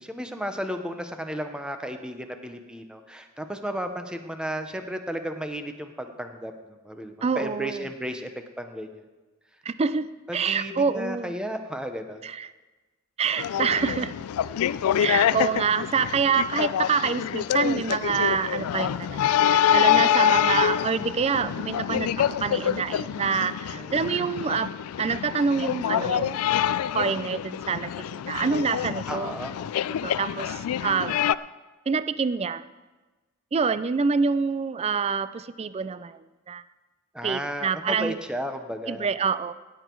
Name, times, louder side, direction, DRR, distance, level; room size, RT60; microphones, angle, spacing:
voice 1, 0.0-8.3 8.6-9.0 10.3-12.2 23.7-24.3 29.1-29.6 37.1-39.1, equal, 5° right, 6 dB, 0.8 m, -34 dB
voice 2, 7.2-7.8 9.7-10.1 10.3-11.4 12.2-12.5 13.2-14.1 15.0-24.7 25.0-26.4 26.9-29.3 30.0-31.2 31.9-32.6 33.5-36.6 37.2-38.2 38.9-39.5, right 5 dB, 30° right, 14 dB, 0.4 m, -26 dB
sound 1, 13.4-31.4, left 10 dB, 80° left, 0.3 m, -26 dB
17.0 x 8.1 x 4.6 m, 1.2 s
head